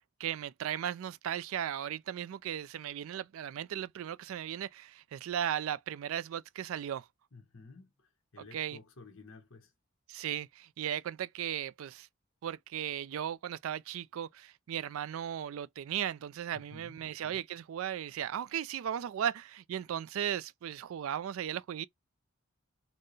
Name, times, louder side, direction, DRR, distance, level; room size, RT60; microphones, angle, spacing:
voice 1, 0.2-7.0 8.5-8.8 10.1-12.1 12.4-21.8, right 10 dB, 70° right, 0.3 m, -36 dB
voice 2, 7.3-9.7 16.5-17.1, left 3 dB, 65° left, 1.0 m, -53 dB
4.3 x 2.1 x 3.1 m
head